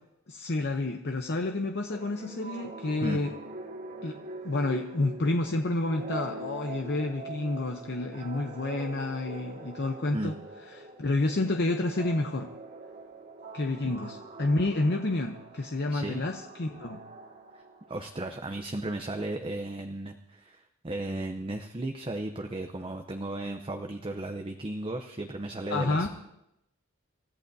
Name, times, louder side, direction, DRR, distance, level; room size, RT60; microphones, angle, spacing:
voice 1, 0.3-3.3 4.0-4.2 4.4-10.3 10.8-12.5 13.5-17.0 25.7-26.1, left 2 dB, 50° left, 4 dB, 0.8 m, -29 dB
sound 1, 1.9-18.3, right 3 dB, 45° right, 2.0 m, -43 dB
voice 2, 15.9-16.3 17.5-17.6 17.9-26.1, right 2 dB, 25° right, 5 dB, 0.6 m, -35 dB
28.0 x 14.5 x 2.7 m, 0.86 s
head